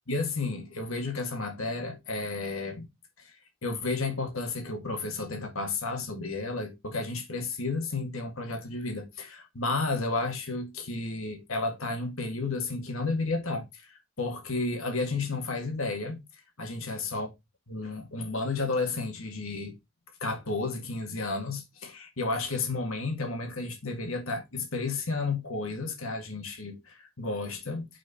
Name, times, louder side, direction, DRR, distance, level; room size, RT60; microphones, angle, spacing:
voice 1, 0.1-2.9 3.2-3.4 3.6-16.2 16.6-17.3 17.7-19.8 20.2-27.9, left 3 dB, 75° left, 1.9 m, -32 dB
6.3 x 4.9 x 4.4 m
head